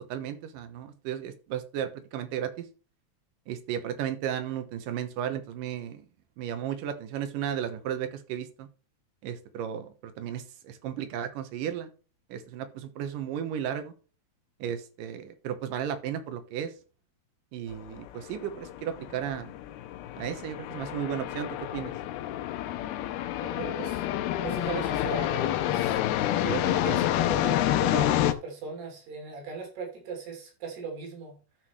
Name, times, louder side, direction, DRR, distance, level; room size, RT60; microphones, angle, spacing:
voice 1, 0.0-2.7 3.5-6.0 6.4-8.7 9.2-11.9 12.3-13.9 14.6-16.7 17.5-19.5 20.2-21.9 26.4-26.9, right 9 dB, 70° right, 10 dB, 2.4 m, -34 dB
sound 1, 17.7-28.3, left 13 dB, 85° left, 2.6 m, -28 dB
voice 2, 23.4-24.1 24.4-26.0 26.8-31.4, right 4 dB, 90° right, 1 dB, 5.3 m, -38 dB
13.5 x 5.9 x 3.2 m, 0.36 s
omnidirectional pair, 4.5 m